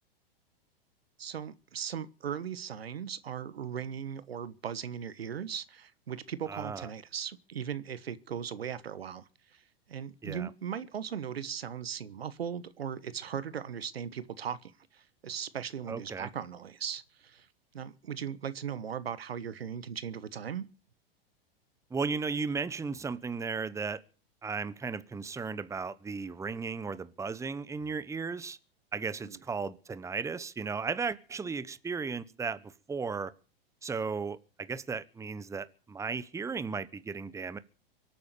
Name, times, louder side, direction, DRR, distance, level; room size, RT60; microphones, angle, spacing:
voice 1, 1.2-9.6 9.9-17.5 17.7-20.7 29.2-29.4, right 8 dB, 90° right, 1.3 m, -38 dB
voice 2, 6.5-6.9 10.2-10.5 15.9-16.3 21.9-24.0 24.4-28.6 28.9-33.3 33.8-37.6, right 5 dB, 10° right, 0.9 m, -35 dB
24.0 x 8.8 x 6.7 m
hypercardioid pair, 110°, 30 cm